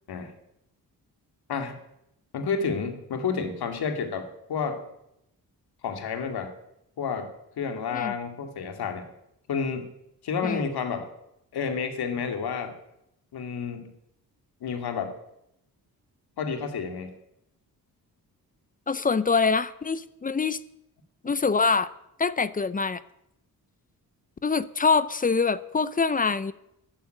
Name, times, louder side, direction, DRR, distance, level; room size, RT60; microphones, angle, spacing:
voice 1, 2.3-4.8 5.8-6.5 7.0-7.3 7.6-9.1 9.5-9.9 10.2-11.1 11.5-12.7 13.3-13.9 14.6-15.1 16.4-17.1, left 5 dB, 85° left, 6 dB, 2.3 m, -30 dB
voice 2, 18.9-20.6 21.2-21.9 22.2-23.0 24.4-26.5, left 4 dB, 25° left, 16 dB, 0.5 m, -24 dB
12.5 x 11.5 x 7.8 m, 0.81 s
wide cardioid pair, 155°, 37 cm